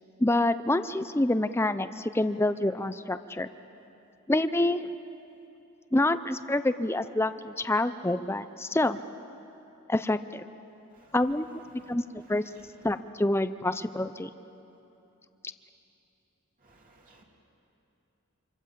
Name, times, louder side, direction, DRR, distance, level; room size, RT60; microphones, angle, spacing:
voice 1, 0.2-3.5 4.3-4.8 5.9-9.0 9.9-10.4 11.1-11.6 11.9-12.0 12.3-12.4 12.8-14.3, left 1 dB, 10° left, 11 dB, 0.5 m, -27 dB
voice 2, 16.6-17.2, right 2 dB, 40° right, -1 dB, 3.0 m, -59 dB
26.5 x 26.0 x 7.5 m, 2.9 s
head